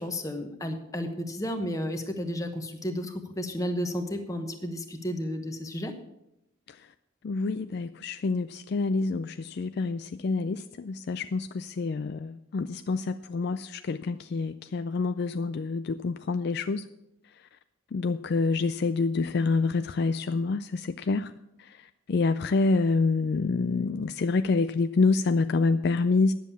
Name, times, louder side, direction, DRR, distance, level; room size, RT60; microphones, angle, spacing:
voice 1, 0.0-5.9, equal, 15° left, 5 dB, 1.1 m, -32 dB
voice 2, 7.2-16.8 17.9-21.3 22.1-26.3, left 3 dB, 50° left, 10 dB, 0.4 m, -27 dB
10.5 x 7.5 x 7.1 m, 0.86 s
head